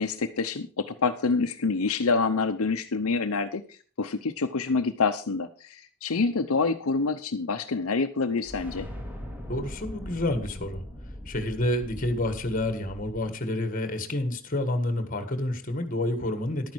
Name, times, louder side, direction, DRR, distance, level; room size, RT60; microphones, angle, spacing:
voice 1, 0.0-8.9, left 4 dB, 75° left, 7 dB, 0.7 m, -27 dB
sound 1, 8.4-13.2, equal, 10° right, 2.3 m, -40 dB
voice 2, 9.5-10.8 11.3-16.7, left 1 dB, 40° left, 9 dB, 1.6 m, -29 dB
11.5 x 9.4 x 4.6 m, 0.39 s
head